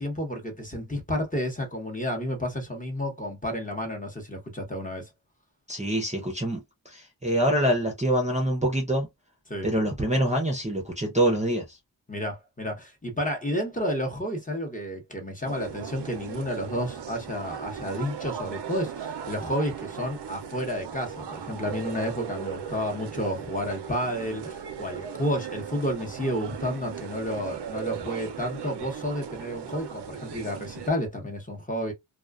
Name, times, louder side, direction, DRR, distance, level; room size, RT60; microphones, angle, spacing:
voice 1, 0.0-5.1 9.5-9.7 12.1-31.9, equal, 15° left, 0.9 m, -31 dB
voice 2, 5.7-6.6 6.9-9.1 9.6-11.8, right 1 dB, 15° right, 0.6 m, -25 dB
sound 1, 15.4-30.9, right 8 dB, 60° right, 0.6 m, -38 dB
2.3 x 2.3 x 2.3 m
wide cardioid pair, 95°, 47 cm